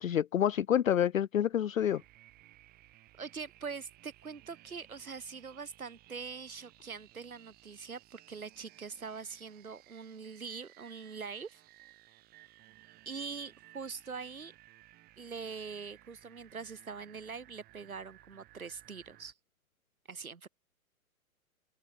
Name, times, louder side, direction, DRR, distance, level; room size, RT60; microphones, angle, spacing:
voice 1, 0.0-2.0, left 10 dB, 65° left, 0.7 m, -28 dB
sound 1, 1.8-19.3, right 17 dB, 20° right, 2.3 m, -60 dB
voice 2, 3.2-11.6 13.0-14.5 15.2-19.3 20.1-20.5, right 5 dB, 70° right, 4.8 m, -43 dB
figure-of-eight pair, 120°, 44 cm